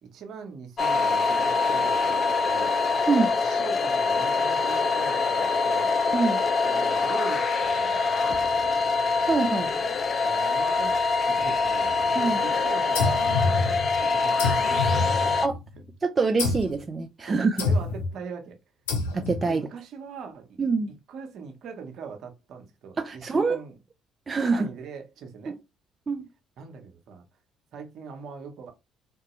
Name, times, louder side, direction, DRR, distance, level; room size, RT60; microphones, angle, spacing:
voice 1, 0.0-2.8 3.4-5.9 6.6-8.7 10.2-11.9 12.4-15.5 17.3-18.6 19.4-20.6 21.1-23.8 24.5-25.6 26.6-27.2 27.7-28.7, right 5 dB, 60° right, 0.9 m, -41 dB
sound 1, 0.8-15.5, left 4 dB, 45° left, 0.4 m, -24 dB
voice 2, 9.3-9.7 12.2-12.4 15.4-15.6 16.0-17.6 19.1-19.7 20.6-20.9 23.0-23.6 24.3-24.7 25.5-25.6 26.1-26.3, right 4 dB, 35° right, 0.4 m, -25 dB
sound 2, 12.9-14.0 14.4-15.7 16.4-16.8 17.6-18.1 18.9-19.5, left 3 dB, 80° left, 0.7 m, -27 dB
3.7 x 2.2 x 3.0 m
hypercardioid pair, 55°, 0 cm